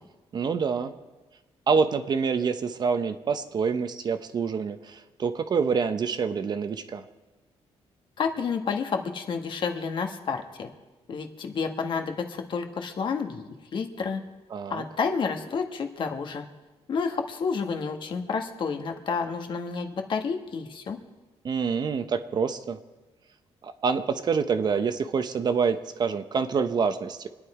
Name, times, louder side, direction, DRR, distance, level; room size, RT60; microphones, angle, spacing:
voice 1, 0.3-0.9 1.7-7.0 14.5-14.8 21.4-22.8 23.6-27.3, right 5 dB, 40° right, 9 dB, 0.8 m, -26 dB
voice 2, 8.2-10.7 11.1-14.2 14.7-16.5 16.9-21.0, left 5 dB, 50° left, 5 dB, 1.4 m, -30 dB
26.0 x 9.9 x 4.9 m, 1.2 s
cardioid pair, 155°, 11 cm